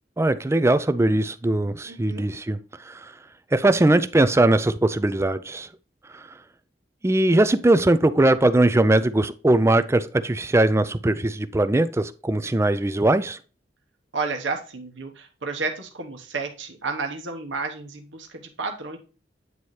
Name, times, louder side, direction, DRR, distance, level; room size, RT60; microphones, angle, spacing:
voice 1, 0.2-3.1 3.5-5.7 6.1-6.2 7.0-13.4, right 2 dB, 15° right, 0.4 m, -20 dB
voice 2, 1.9-2.3 14.1-19.0, right 4 dB, 90° right, 1.1 m, -31 dB
9.4 x 4.1 x 3.2 m
head